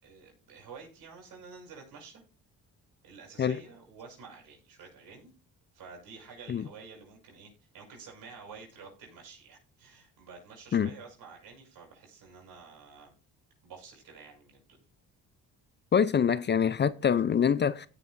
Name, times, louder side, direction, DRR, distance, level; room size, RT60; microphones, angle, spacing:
voice 1, 0.0-2.2 3.0-5.3 5.7-13.1 13.6-14.8, right 5 dB, 75° right, 5.9 m, -50 dB
voice 2, 15.9-17.9, left 7 dB, 30° left, 0.4 m, -25 dB
16.5 x 6.3 x 2.5 m
supercardioid pair, 75°, 35 cm